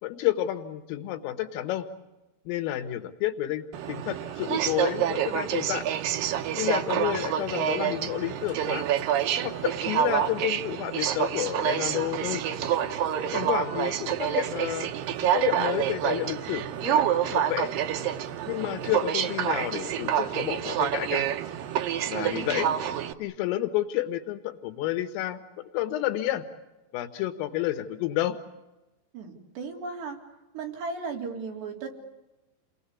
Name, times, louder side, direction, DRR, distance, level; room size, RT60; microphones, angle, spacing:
voice 1, 0.0-1.9 2.5-5.9 6.6-8.9 9.4-12.4 13.3-14.9 15.2-17.7 18.5-21.3 22.1-22.7 23.2-26.5 26.9-28.4, left 14 dB, 85° left, 8 dB, 4.0 m, -30 dB
Aircraft, 3.7-23.1, right 10 dB, 85° right, 2.0 m, -28 dB
voice 2, 22.1-22.8 29.1-30.2 30.5-31.9, right 4 dB, 60° right, 0 dB, 5.6 m, -36 dB
29.0 x 20.0 x 8.5 m, 1.0 s
omnidirectional pair, 5.8 m